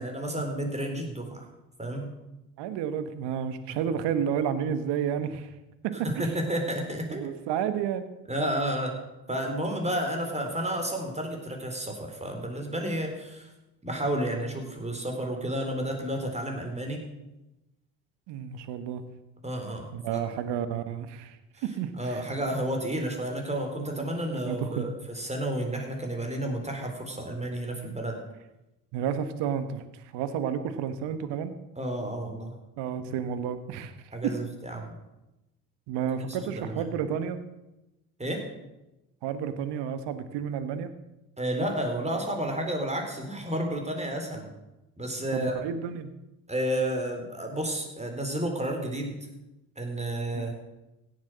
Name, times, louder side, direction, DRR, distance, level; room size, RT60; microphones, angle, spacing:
voice 1, 0.0-1.4 1.8-2.1 3.7-3.8 6.0-7.3 8.3-8.9 9.3-13.5 13.8-17.0 19.4-20.2 21.6-21.7 22.0-28.2 31.8-32.6 34.1-34.9 36.3-36.9 38.2-38.4 41.4-44.5 45.0-45.5 46.5-49.2 49.8-50.5, right 1 dB, 15° right, 3 dB, 4.2 m, -31 dB
voice 2, 2.6-5.5 5.8-6.3 7.1-8.1 18.3-19.0 19.9-21.4 21.6-22.2 23.9-24.9 28.9-29.8 30.1-31.5 32.8-33.9 34.2-34.4 35.9-37.4 39.2-40.9 45.3-46.1 50.3-50.5, right 8 dB, 65° right, 11 dB, 1.4 m, -31 dB
16.5 x 8.0 x 6.4 m, 0.96 s
hypercardioid pair, 50°, 44 cm